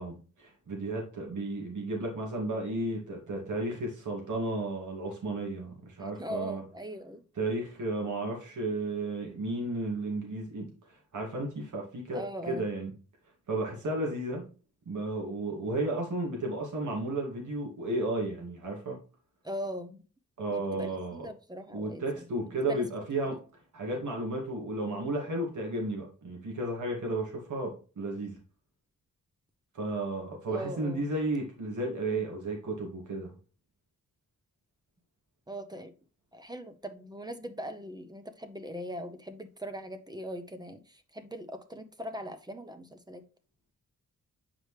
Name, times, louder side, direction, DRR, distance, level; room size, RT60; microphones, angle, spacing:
voice 1, 0.0-6.6 7.4-12.9 13.5-14.5 14.9-19.0 20.4-21.3 21.7-23.4 23.7-28.4 29.7-33.3, right 2 dB, 70° right, 2.3 m, -33 dB
voice 2, 6.0-7.2 12.1-12.7 19.4-20.0 20.5-22.8 30.5-31.1 35.5-35.9 36.3-43.2, equal, 15° right, 0.7 m, -40 dB
7.8 x 4.9 x 3.2 m
wide cardioid pair, 135°, 31 cm